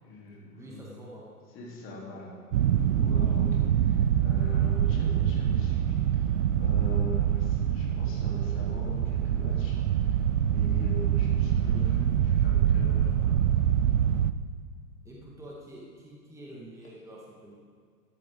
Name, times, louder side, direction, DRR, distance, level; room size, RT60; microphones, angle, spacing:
voice 1, 0.0-1.1 1.5-2.4 3.0-13.4, left 1 dB, 25° left, -4 dB, 3.6 m, -42 dB
voice 2, 0.6-1.3 15.0-17.6, right 1 dB, 5° right, -4 dB, 1.8 m, -47 dB
sound 1, 2.5-14.3, right 9 dB, 55° right, 0.6 m, -25 dB
14.5 x 10.5 x 3.9 m, 2.1 s
figure-of-eight pair, 110°, 47 cm